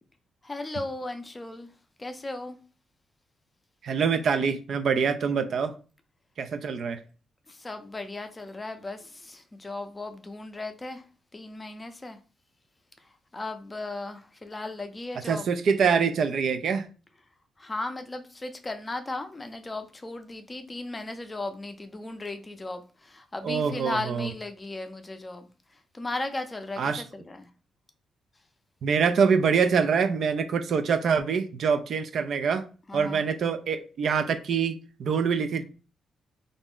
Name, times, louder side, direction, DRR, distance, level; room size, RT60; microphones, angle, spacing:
voice 1, 0.4-1.7 2.0-2.6 7.5-11.0 11.3-12.2 13.3-15.4 17.6-25.5 25.9-27.5 32.9-33.2, left 2 dB, 25° left, 0.5 m, -36 dB
voice 2, 3.8-5.7 6.4-7.0 15.3-16.9 23.4-24.3 26.8-27.0 28.8-32.6 32.9-35.6, right 6 dB, 65° right, 0.3 m, -25 dB
2.5 x 2.0 x 3.6 m
cardioid pair, 90°, 0 cm